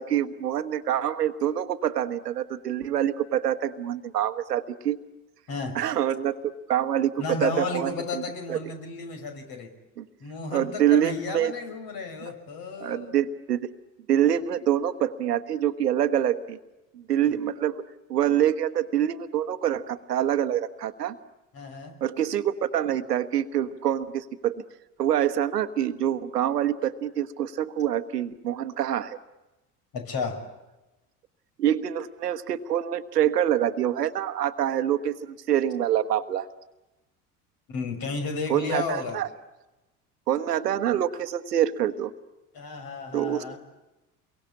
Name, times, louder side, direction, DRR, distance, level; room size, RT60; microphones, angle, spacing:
voice 1, 0.0-5.0 5.7-6.3 6.7-8.2 8.5-8.6 10.0-10.1 10.5-11.5 12.2-12.3 12.8-13.7 14.1-16.6 16.9-17.8 18.1-21.2 22.0-24.6 25.0-29.2 31.6-36.5 38.5-39.3 40.3-42.1 43.1-43.6, right 10 dB, 75° right, 11 dB, 1.4 m, -26 dB
voice 2, 5.5-5.8 7.2-9.7 10.2-13.2 21.5-22.0 29.9-30.5 37.7-39.2 42.5-43.6, left 4 dB, 45° left, 6 dB, 6.2 m, -33 dB
29.0 x 23.0 x 8.6 m, 1.0 s
figure-of-eight pair, 65°, 48 cm